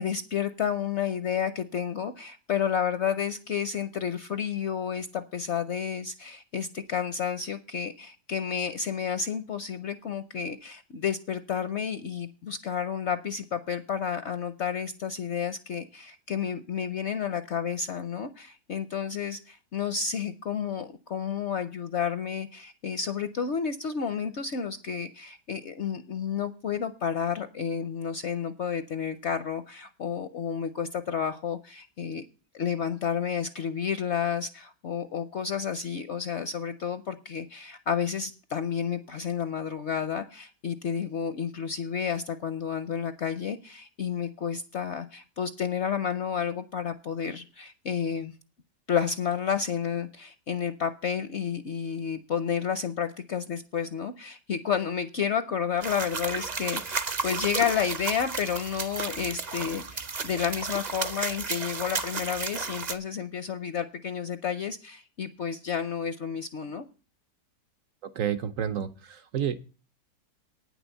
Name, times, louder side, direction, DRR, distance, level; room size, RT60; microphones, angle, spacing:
voice 1, 0.0-32.2 32.5-48.3 48.9-66.8, left 7 dB, 60° left, 0.7 m, -31 dB
sound 1, 55.8-63.0, right 4 dB, 45° right, 0.5 m, -33 dB
voice 2, 68.1-69.6, right 9 dB, 65° right, 0.9 m, -30 dB
9.2 x 6.2 x 8.0 m
omnidirectional pair, 1.8 m